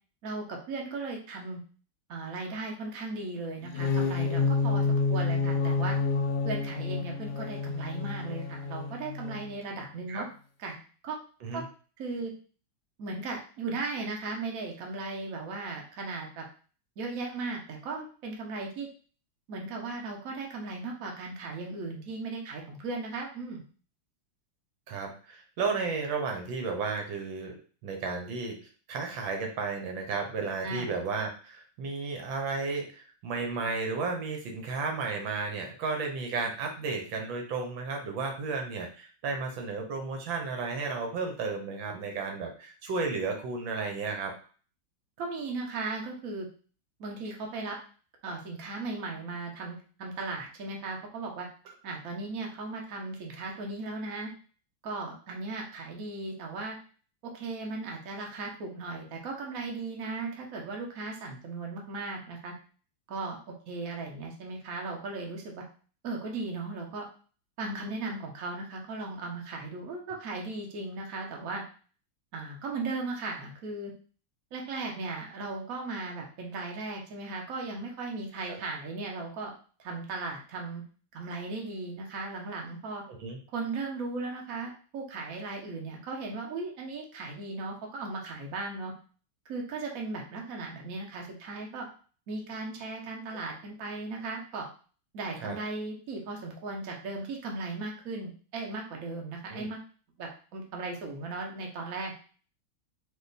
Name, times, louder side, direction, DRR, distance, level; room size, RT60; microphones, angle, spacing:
voice 1, 0.2-1.6 2.1-6.0 6.4-10.3 10.6-10.8 11.0-11.2 11.5-11.6 12.0-12.3 13.0-16.4 17.0-18.9 19.5-23.6 30.6-30.9 45.2-46.5 47.0-47.8 48.2-51.5 51.8-54.3 54.8-56.8 57.2-62.5 63.1-63.4 63.7-65.4 66.0-67.1 67.6-71.6 72.3-73.9 74.5-79.5 79.8-80.8 81.1-83.0 83.5-88.9 89.5-91.9 92.3-94.7 95.1-99.8 100.2-102.1, right 3 dB, 55° right, 0 dB, 1.2 m, -37 dB
sound 1, 3.6-9.6, left 4 dB, 70° left, 1.0 m, -29 dB
voice 2, 24.9-27.5 27.8-28.6 28.9-44.3 51.7-51.8 78.5-78.6 83.2-83.4 95.4-95.6 99.5-99.7, right 4 dB, 80° right, 3 dB, 1.6 m, -33 dB
4.3 x 2.7 x 4.0 m, 0.39 s
omnidirectional pair, 2.1 m